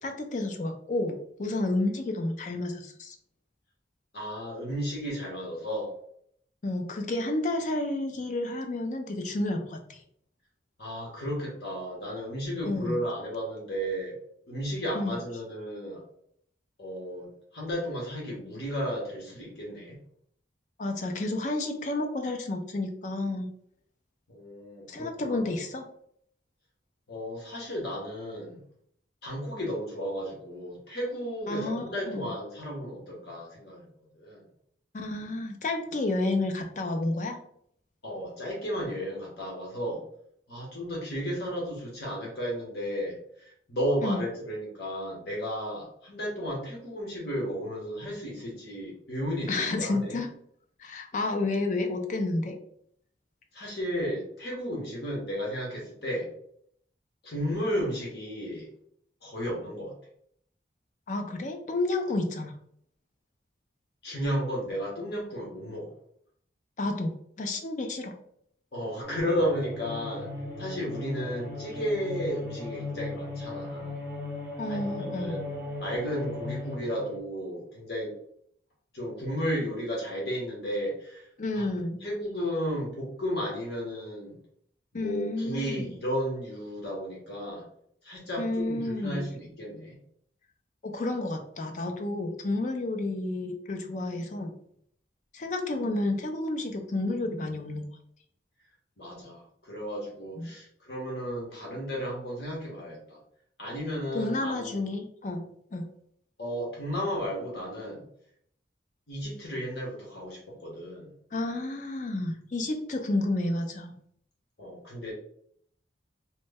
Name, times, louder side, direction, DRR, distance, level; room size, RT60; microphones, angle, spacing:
voice 1, 0.0-3.2 6.6-10.0 12.6-13.0 14.9-15.2 20.8-23.5 24.9-25.8 31.5-32.3 34.9-37.4 44.0-44.2 49.5-50.3 50.8-52.6 61.1-62.6 66.8-68.1 74.6-75.4 81.4-82.0 84.9-85.9 88.4-89.3 90.8-94.5 95.3-97.9 100.4-100.5 104.1-105.8 111.3-114.0, left 2 dB, 40° left, 5 dB, 0.4 m, -31 dB
voice 2, 4.1-5.9 10.8-14.2 14.5-16.0 16.8-20.0 24.3-25.4 27.1-28.6 29.2-33.9 34.1-34.4 38.0-40.0 40.5-43.2 43.7-50.2 53.5-56.3 57.2-58.7 59.2-59.9 64.0-65.9 68.7-70.3 70.6-73.9 74.7-75.5 75.8-78.1 78.9-81.3 81.5-81.7 82.0-84.4 84.9-87.6 88.0-89.9 99.0-103.2 103.6-104.8 106.4-108.0 109.1-111.1 114.6-115.1, equal, 55° left, -3 dB, 1.1 m, -33 dB
sound 1, 69.0-77.2, left 2 dB, 10° right, 0.8 m, -37 dB
3.0 x 2.1 x 3.4 m, 0.66 s
head